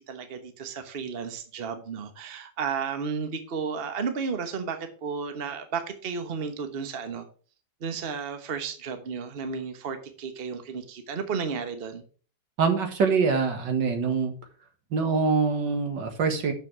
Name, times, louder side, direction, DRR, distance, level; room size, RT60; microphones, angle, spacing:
voice 1, 0.0-7.3 7.8-12.0, right 5 dB, 40° right, 7 dB, 1.2 m, -33 dB
voice 2, 12.6-14.3 14.9-16.5, right 5 dB, 80° right, 5 dB, 2.2 m, -24 dB
6.9 x 5.9 x 5.9 m, 0.40 s
omnidirectional pair, 1.9 m